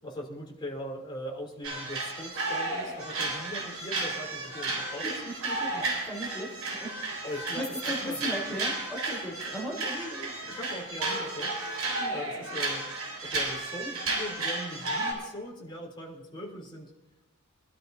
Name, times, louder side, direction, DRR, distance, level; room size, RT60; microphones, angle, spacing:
voice 1, 0.0-5.2 5.7-5.8 6.6-6.7 7.2-8.2 8.4-8.6 9.6-12.8 13.2-16.9, equal, 20° left, -3 dB, 3.4 m, -40 dB
sound 1, 1.6-15.1, right 2 dB, 80° right, 6.5 m, -33 dB
voice 2, 5.0-5.8 6.0-6.9 7.5-9.8 12.0-12.2, equal, 5° left, -3 dB, 3.6 m, -37 dB
24.0 x 12.5 x 2.8 m, 1.0 s
head